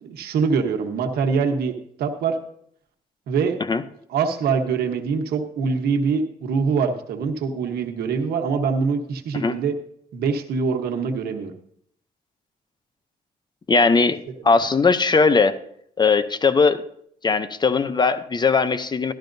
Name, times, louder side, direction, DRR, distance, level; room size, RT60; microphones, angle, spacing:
voice 1, 0.0-1.7 2.0-2.4 3.3-3.6 4.1-9.7 10.1-11.5 14.4-14.5, right 5 dB, 85° right, 5 dB, 1.2 m, -24 dB
voice 2, 13.7-14.2 14.4-15.5 16.0-16.8 17.2-19.1, left 4 dB, 30° left, 12 dB, 0.6 m, -19 dB
13.0 x 12.5 x 2.7 m, 0.69 s
cardioid pair, 90°, 16 cm